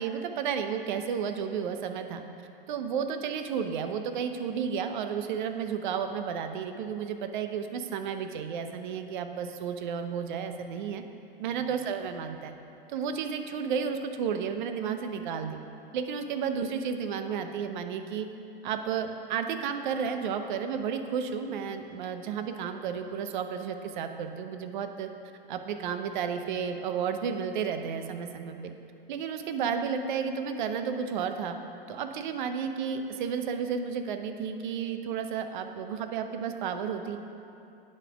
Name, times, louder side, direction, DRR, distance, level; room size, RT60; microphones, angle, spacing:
voice 1, 0.0-2.2 2.7-11.0 11.4-12.5 12.9-15.6 15.9-18.3 18.6-25.1 25.5-28.6 29.1-31.6 31.9-37.2, right 7 dB, 55° right, 7 dB, 0.6 m, -32 dB
8.7 x 4.3 x 5.1 m, 2.7 s
hypercardioid pair, 110°, 29 cm